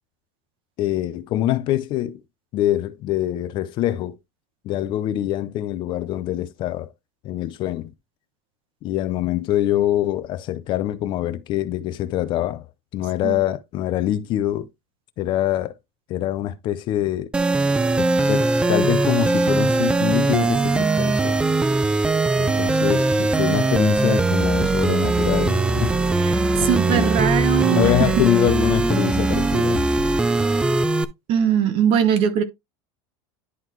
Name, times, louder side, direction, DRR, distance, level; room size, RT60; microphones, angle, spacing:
voice 1, 0.8-2.2 2.5-4.2 4.6-6.9 7.2-7.9 8.8-12.7 12.9-14.7 15.2-15.7 16.1-17.3 18.0-21.4 22.4-25.9 26.6-27.1 27.6-29.9, left 13 dB, 40° left, 0.6 m, -24 dB
sound 1, 17.3-31.0, right 2 dB, 10° right, 0.4 m, -20 dB
voice 2, 26.2-28.1 31.3-32.4, right 8 dB, 45° right, 1.2 m, -21 dB
11.0 x 3.9 x 3.1 m
supercardioid pair, 155°, 13 cm